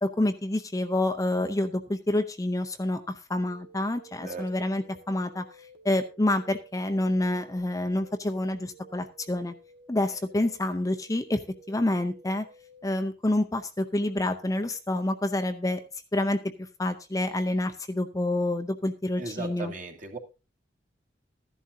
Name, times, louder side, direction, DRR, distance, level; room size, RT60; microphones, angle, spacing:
voice 1, 0.0-5.4 5.8-9.5 9.9-11.4 11.7-12.5 12.8-15.8 16.1-16.4 16.8-19.7, left 1 dB, 20° left, 6 dB, 0.6 m, -28 dB
sound 1, 3.4-12.9, right 2 dB, 85° right, 1.8 m, -54 dB
voice 2, 19.2-20.2, right 3 dB, 45° right, 2 dB, 2.2 m, -37 dB
14.5 x 11.0 x 2.7 m, 0.29 s
head